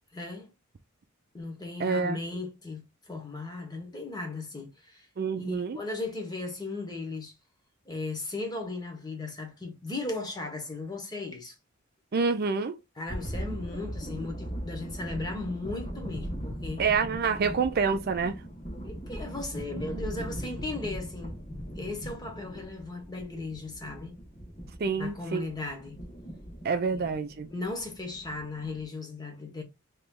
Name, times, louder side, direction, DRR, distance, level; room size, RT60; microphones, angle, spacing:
voice 1, 0.1-0.5 1.3-5.1 5.3-7.3 7.8-11.5 13.0-16.8 18.8-21.4 21.8-24.1 25.0-26.0 26.9-27.0 27.5-29.6, left 3 dB, 20° left, 1.1 m, -37 dB
voice 2, 1.8-2.2 5.2-5.8 12.1-12.8 16.8-18.4 24.8-25.5 26.6-27.5, right 5 dB, 45° right, 0.4 m, -27 dB
sound 1, 13.1-28.8, equal, 35° left, 1.4 m, -39 dB
3.2 x 3.0 x 3.6 m
head